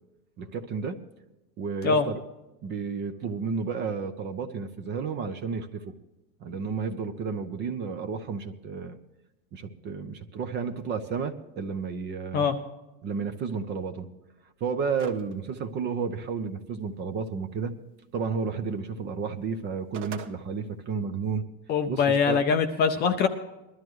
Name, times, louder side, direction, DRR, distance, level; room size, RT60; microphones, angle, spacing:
voice 1, 0.4-1.0 1.6-2.2 2.6-5.9 6.4-9.0 9.5-12.5 13.0-14.1 14.6-17.7 18.1-21.5 21.9-22.4, right 5 dB, 25° right, 10 dB, 0.5 m, -32 dB
sound 1, 15.0-15.3 15.7-15.8 19.6-20.3, right 7 dB, 50° right, 1.4 m, -40 dB
voice 2, 21.7-23.3, left 6 dB, 20° left, 6 dB, 0.5 m, -23 dB
21.0 x 12.5 x 3.1 m, 1.0 s
supercardioid pair, 160°, 47 cm